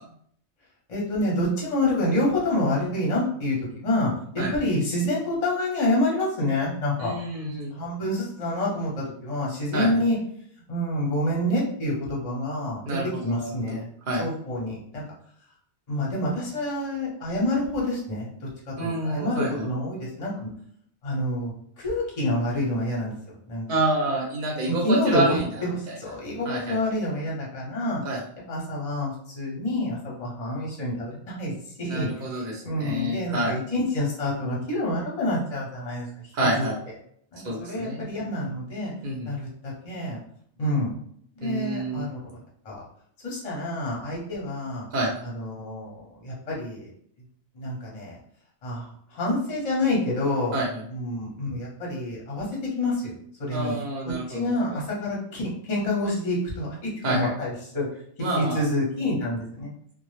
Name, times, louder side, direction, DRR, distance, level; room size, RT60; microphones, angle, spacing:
voice 1, 0.9-7.1 7.4-10.2 10.7-13.0 13.2-13.9 14.2-15.0 15.9-20.5 21.0-23.1 23.5-23.7 24.6-28.0 28.5-31.5 31.8-36.1 36.6-36.7 37.3-38.9 39.2-40.2 40.6-40.9 41.4-42.2 42.6-42.8 43.2-44.9 45.2-46.9 47.5-48.2 48.6-50.6 50.9-53.1 53.4-53.8 54.3-57.9 58.3-59.7, left 1 dB, 35° left, -4 dB, 0.7 m, -27 dB
voice 2, 7.0-7.7 9.7-9.9 12.8-13.8 14.1-14.2 18.8-19.6 23.7-25.9 26.4-26.8 28.0-28.2 31.8-33.6 36.3-36.8 37.4-38.0 39.0-39.3 41.4-42.1 44.9-45.1 50.5-50.8 53.5-54.8 57.0-57.3 58.2-58.6, right 2 dB, 50° right, -2 dB, 0.7 m, -28 dB
2.1 x 2.0 x 3.0 m, 0.66 s
omnidirectional pair, 1.2 m